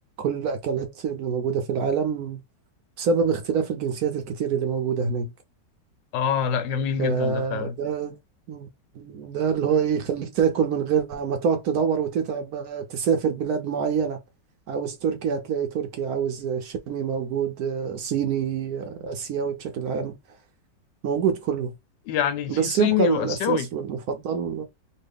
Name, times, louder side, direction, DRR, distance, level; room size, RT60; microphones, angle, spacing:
voice 1, 0.2-2.4 3.0-5.3 7.0-8.1 8.5-8.7 8.9-14.2 14.7-20.2 21.0-21.7 22.5-24.6, right 6 dB, 65° right, 1.0 m, -26 dB
voice 2, 6.1-7.8 22.1-23.7, left 8 dB, 85° left, 1.3 m, -26 dB
3.2 x 2.5 x 3.4 m
omnidirectional pair, 1.9 m